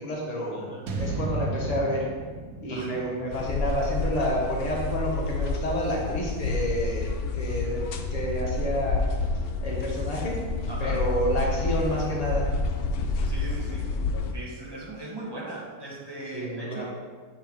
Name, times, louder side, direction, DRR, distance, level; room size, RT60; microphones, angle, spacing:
voice 1, 0.0-0.7 0.9-2.1 2.6-7.1 7.3-7.8 8.1-9.0 9.6-10.4 10.8-12.5 16.3-16.9, equal, 30° left, -3 dB, 1.2 m, -29 dB
voice 2, 0.5-1.0 2.7-3.0 10.7-11.0 13.2-13.9 14.3-16.9, right 1 dB, 20° right, -4 dB, 1.0 m, -39 dB
sound 1, 0.9-5.1, right 2 dB, 90° right, 1.2 m, -35 dB
sound 2, 3.3-14.3, left 3 dB, 65° left, 0.6 m, -29 dB
8.2 x 4.4 x 3.5 m, 1.5 s
omnidirectional pair, 1.4 m